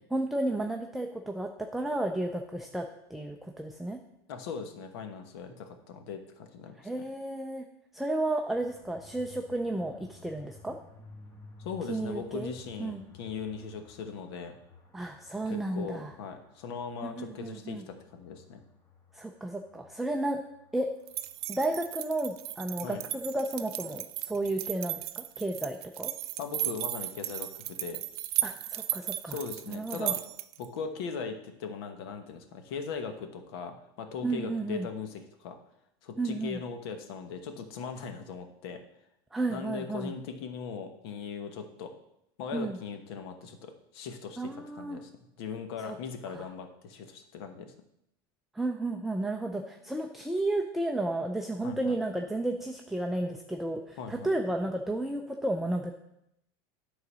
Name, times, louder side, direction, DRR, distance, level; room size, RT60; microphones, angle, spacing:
voice 1, 0.1-4.0 6.8-7.6 7.9-10.8 11.9-12.5 12.8-13.0 14.9-16.1 17.0-17.8 19.1-20.4 20.7-20.9 21.5-26.1 28.4-29.4 29.7-30.1 34.2-34.9 36.2-36.6 39.3-40.1 42.5-42.8 44.4-45.0 45.8-46.0 46.3-46.5 48.5-55.9, right 2 dB, ahead, 3 dB, 0.4 m, -32 dB
voice 2, 4.3-7.0 11.6-14.6 15.5-18.6 22.8-23.0 26.4-28.0 29.3-30.2 30.6-35.6 36.0-38.8 39.5-41.9 42.4-45.1 45.4-47.7 51.6-52.0 54.0-54.3, left 6 dB, 80° left, 7 dB, 1.2 m, -39 dB
sound 1, 8.5-22.4, left 3 dB, 20° left, 1.6 m, -55 dB
sound 2, 21.1-30.6, right 14 dB, 90° right, 0.5 m, -35 dB
9.8 x 4.0 x 6.2 m, 0.82 s
supercardioid pair, 140°, 13 cm